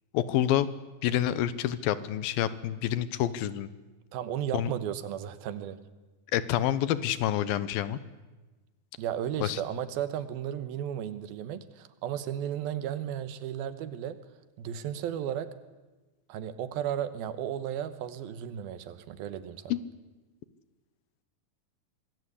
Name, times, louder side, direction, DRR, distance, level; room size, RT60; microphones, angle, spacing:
voice 1, 0.1-0.7 1.0-3.7 4.5-4.7 6.3-8.0 9.4-9.6 19.7-19.8, left 12 dB, 75° left, 15 dB, 2.7 m, -28 dB
voice 2, 4.1-5.9 9.0-14.2 14.6-15.6 16.3-19.7, right 10 dB, 75° right, 13 dB, 2.9 m, -34 dB
25.5 x 20.0 x 8.3 m, 1.2 s
omnidirectional pair, 4.4 m